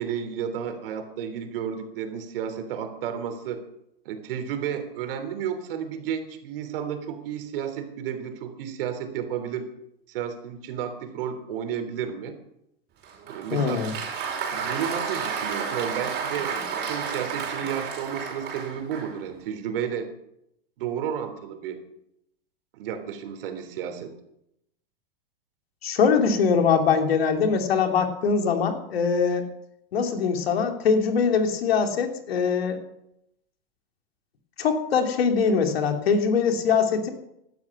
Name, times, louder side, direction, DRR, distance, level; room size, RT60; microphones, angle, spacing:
voice 1, 0.0-3.6 4.0-9.6 10.1-12.3 13.3-13.8 14.5-16.6 16.8-20.1 20.8-21.8 22.8-24.1, right 8 dB, 65° right, 7 dB, 3.3 m, -32 dB
Applause, 13.0-19.2, right 6 dB, 35° right, 5.0 m, -31 dB
voice 2, 13.5-13.9 25.8-29.4 29.9-32.8 34.6-37.1, left 5 dB, 75° left, 5 dB, 2.9 m, -22 dB
17.5 x 12.0 x 6.1 m, 0.80 s
hypercardioid pair, 110°, 30 cm